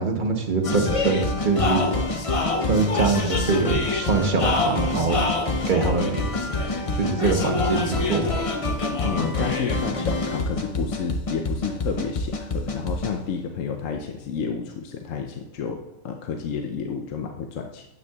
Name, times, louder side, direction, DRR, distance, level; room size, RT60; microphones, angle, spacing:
voice 1, 0.0-2.0 2.7-5.2 5.7-6.3 6.9-8.3, right 4 dB, 40° right, 3 dB, 0.9 m, -23 dB
sound 1, 0.6-13.2, left 3 dB, 45° left, 0.4 m, -26 dB
voice 2, 9.0-15.8 16.0-17.9, left 6 dB, 70° left, 4 dB, 1.0 m, -30 dB
9.1 x 7.9 x 2.3 m, 1.0 s
omnidirectional pair, 1.5 m